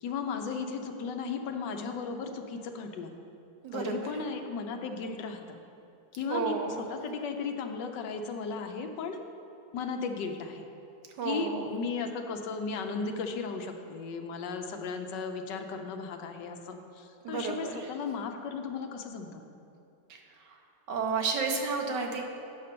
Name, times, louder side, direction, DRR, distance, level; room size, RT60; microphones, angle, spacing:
voice 1, 0.0-3.1 3.7-5.6 6.2-6.5 6.9-9.2 9.7-10.7 11.2-19.5, left 5 dB, 80° left, 5 dB, 1.4 m, -35 dB
voice 2, 3.6-4.2 6.3-6.9 11.2-11.8 17.2-17.9 20.1-20.6 20.9-22.2, right 5 dB, 75° right, 3 dB, 1.5 m, -32 dB
9.4 x 5.4 x 6.7 m, 2.7 s
omnidirectional pair, 1.9 m